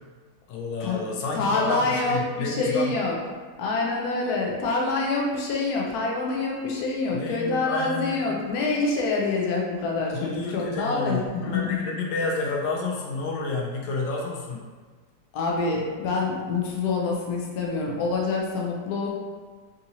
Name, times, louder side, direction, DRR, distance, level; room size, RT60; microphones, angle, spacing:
voice 1, 0.5-2.9 7.1-8.4 10.1-14.6, left 3 dB, 85° left, -1 dB, 1.3 m, -30 dB
voice 2, 1.4-3.2 3.6-11.7 15.3-19.1, left 3 dB, 65° left, -2 dB, 1.0 m, -26 dB
3.7 x 2.8 x 2.7 m, 1.4 s
omnidirectional pair, 1.9 m